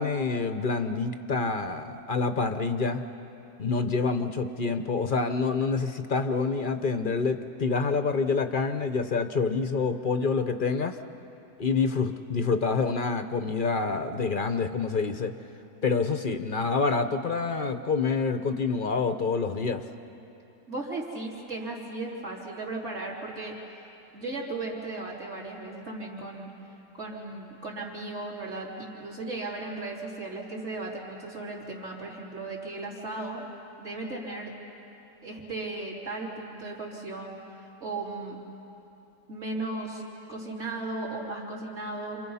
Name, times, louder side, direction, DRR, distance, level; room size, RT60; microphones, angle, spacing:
voice 1, 0.0-3.0 3.6-11.0 11.6-15.3 15.8-19.8, left 4 dB, 45° left, 8 dB, 0.8 m, -27 dB
voice 2, 20.7-23.5 24.1-26.5 26.9-33.5 33.8-34.5 35.2-37.4 37.8-38.4 39.3-40.0 40.3-42.2, right 2 dB, 45° right, -3 dB, 3.8 m, -36 dB
29.5 x 27.0 x 5.6 m, 2.9 s
omnidirectional pair, 1.7 m